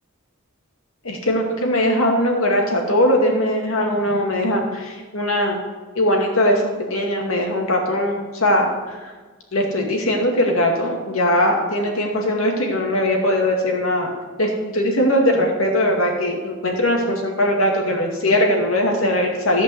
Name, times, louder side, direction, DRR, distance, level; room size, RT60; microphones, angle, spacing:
voice 1, 1.0-5.6 6.0-9.1 9.5-14.1 14.4-19.6, left 1 dB, 85° left, 1 dB, 2.2 m, -20 dB
14.5 x 5.3 x 8.0 m, 1.4 s
head